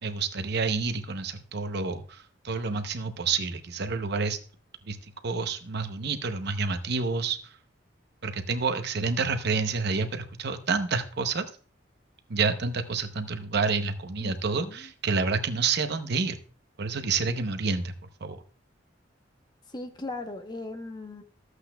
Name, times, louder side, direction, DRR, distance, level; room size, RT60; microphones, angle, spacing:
voice 1, 0.0-4.4 4.9-5.0 5.2-7.6 8.2-11.5 12.3-16.4 16.8-17.9 18.2-18.4, right 4 dB, 60° right, 0.8 m, -29 dB
voice 2, 14.2-14.9 19.7-21.2, left 2 dB, 25° left, 0.9 m, -38 dB
13.5 x 8.0 x 2.2 m
head